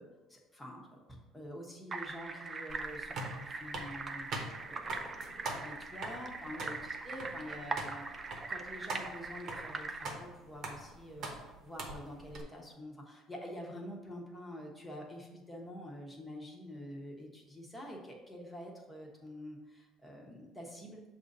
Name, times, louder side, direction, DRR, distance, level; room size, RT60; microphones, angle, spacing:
voice 1, 0.0-8.1 8.5-21.0, equal, 5° left, -1 dB, 1.1 m, -47 dB
sound 1, 1.9-10.1, right 3 dB, 25° right, 0.4 m, -42 dB
sound 2, 2.7-12.4, right 2 dB, 50° right, 1.0 m, -44 dB
6.6 x 2.7 x 5.3 m, 1.2 s
cardioid pair, 130°, 0 cm